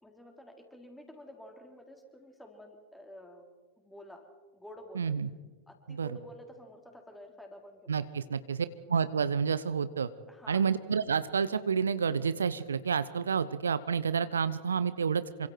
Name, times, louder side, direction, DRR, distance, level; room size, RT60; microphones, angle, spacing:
voice 1, 0.0-3.4 3.8-4.3 4.5-5.1 5.7-8.2 10.3-10.7, left 1 dB, 5° left, 3 dB, 4.3 m, -50 dB
voice 2, 4.9-5.3 5.9-6.1 7.9-10.1 10.5-15.5, right 6 dB, 70° right, 15 dB, 0.8 m, -29 dB
28.0 x 25.0 x 4.6 m, 1.3 s
figure-of-eight pair, 90°, 0 cm